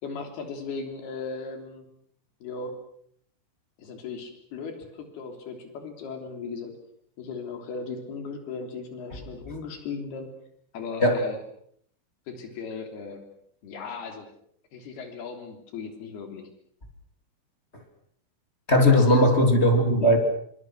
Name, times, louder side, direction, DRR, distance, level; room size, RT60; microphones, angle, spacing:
voice 1, 0.0-1.9 2.4-2.8 3.8-6.7 7.2-10.3 10.7-11.4 12.3-13.2 13.6-14.3 14.7-16.5 18.8-19.4, left 4 dB, 70° left, 5 dB, 5.3 m, -37 dB
voice 2, 18.7-20.2, left 1 dB, 15° left, 4 dB, 3.1 m, -18 dB
26.5 x 25.0 x 6.4 m, 0.67 s
omnidirectional pair, 4.7 m